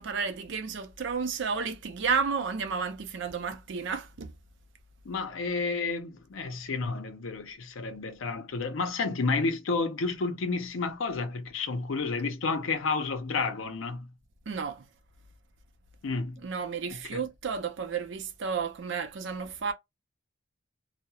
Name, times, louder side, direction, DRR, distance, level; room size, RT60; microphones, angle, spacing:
voice 1, 0.0-4.3 14.5-14.9 16.4-19.7, right 5 dB, 60° right, 0.4 m, -32 dB
voice 2, 5.0-14.1 16.0-16.5 16.9-17.3, left 4 dB, 75° left, 0.6 m, -31 dB
2.3 x 2.0 x 2.8 m
head